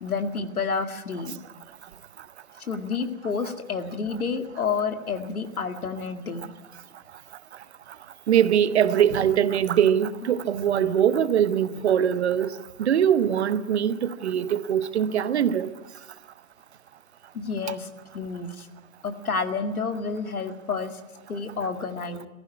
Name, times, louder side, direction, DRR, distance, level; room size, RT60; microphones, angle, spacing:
voice 1, 0.0-1.4 2.6-6.5 17.3-17.9 18.1-18.7 19.0-21.0 21.3-22.3, left 5 dB, 75° left, 2.1 m, -29 dB
voice 2, 8.3-12.5 12.8-15.7, right 9 dB, 45° right, 0.9 m, -22 dB
18.0 x 15.0 x 9.6 m
figure-of-eight pair, 130°, 44 cm